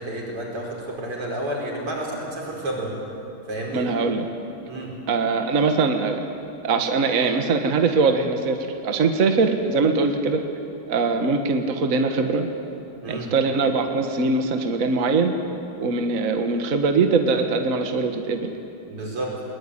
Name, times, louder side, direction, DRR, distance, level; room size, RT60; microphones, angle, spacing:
voice 1, 0.0-2.9 3.5-3.9 4.7-4.9 13.0-13.3 18.9-19.4, right 1 dB, 90° right, -2 dB, 6.1 m, -30 dB
voice 2, 3.7-4.2 5.1-6.2 6.6-10.4 10.9-12.5 13.1-15.3 15.8-18.5, right 4 dB, 40° right, 5 dB, 1.7 m, -22 dB
21.0 x 21.0 x 10.0 m, 2.7 s
omnidirectional pair, 2.4 m